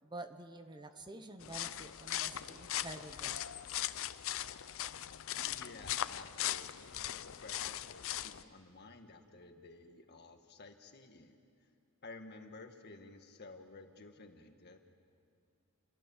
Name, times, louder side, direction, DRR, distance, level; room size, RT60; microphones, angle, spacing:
voice 1, 0.0-3.4, right 2 dB, 20° right, 8 dB, 0.9 m, -49 dB
sound 1, 1.4-8.4, left 12 dB, 65° left, 0.6 m, -39 dB
voice 2, 5.4-11.4 12.0-14.8, left 3 dB, 50° left, 5 dB, 1.8 m, -53 dB
30.0 x 21.0 x 7.3 m, 2.4 s
head